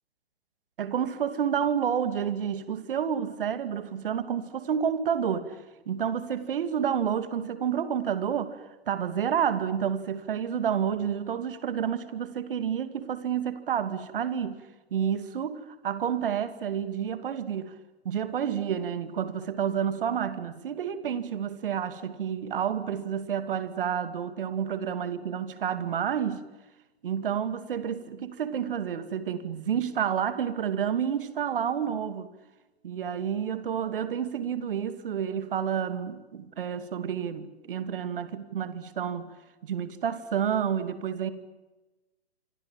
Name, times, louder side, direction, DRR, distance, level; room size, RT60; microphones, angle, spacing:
voice 1, 0.8-5.6 5.9-8.6 8.9-14.6 14.9-17.7 18.0-26.4 27.0-32.3 32.8-39.3 39.6-41.3, right 8 dB, 55° right, 2.6 m, -29 dB
26.5 x 25.5 x 7.7 m
figure-of-eight pair, 120°, 32 cm